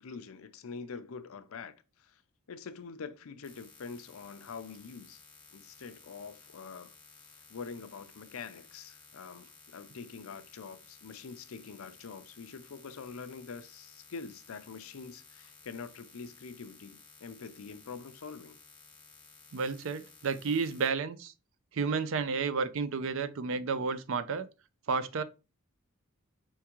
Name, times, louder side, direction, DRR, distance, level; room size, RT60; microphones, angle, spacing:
voice 1, 0.0-1.7 2.0-2.2 2.5-5.2 5.5-6.9 7.5-18.6, left 5 dB, 70° left, 0.5 m, -45 dB
sound 1, 3.4-20.9, left 3 dB, 5° left, 1.2 m, -56 dB
voice 2, 19.5-21.3 21.7-24.5 24.9-25.2, right 5 dB, 60° right, 0.4 m, -31 dB
4.4 x 3.5 x 3.0 m
head